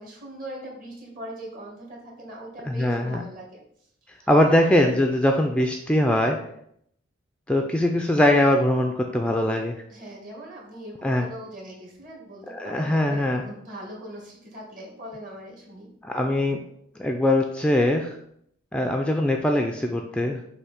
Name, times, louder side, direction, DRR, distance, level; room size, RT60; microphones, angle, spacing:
voice 1, 0.0-3.6 4.1-4.6 9.9-15.9, right 1 dB, 45° right, -2 dB, 1.9 m, -41 dB
voice 2, 2.6-3.2 4.3-6.4 7.5-9.8 11.0-11.3 12.5-13.5 16.0-16.6 17.0-18.2 18.7-20.4, left 1 dB, 5° left, 3 dB, 0.3 m, -22 dB
6.6 x 2.7 x 5.7 m, 0.71 s
head